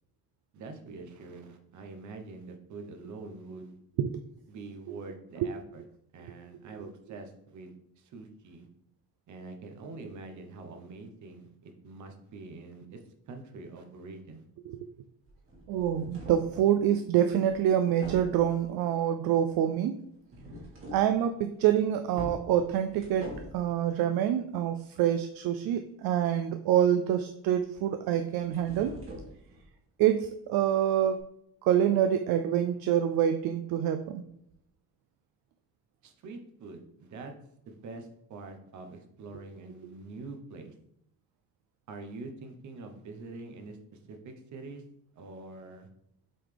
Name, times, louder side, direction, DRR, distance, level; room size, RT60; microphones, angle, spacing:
voice 1, 0.5-3.8 4.5-5.8 6.1-8.7 9.3-14.4 36.0-37.3 37.7-40.7 41.9-44.8 45.1-45.9, right 3 dB, 50° right, 6 dB, 0.9 m, -45 dB
sound 1, 15.2-16.5 17.4-17.7 18.0-18.6 20.2-21.1 21.5-21.7 22.1-23.7 28.1-29.7 31.1-31.2, equal, 35° right, 2.0 m, -44 dB
voice 2, 15.7-20.0 20.9-28.9 30.0-31.2 31.6-34.2, right 10 dB, 70° right, 8 dB, 0.5 m, -26 dB
7.6 x 4.0 x 3.4 m, 0.75 s
cardioid pair, 170°, 37 cm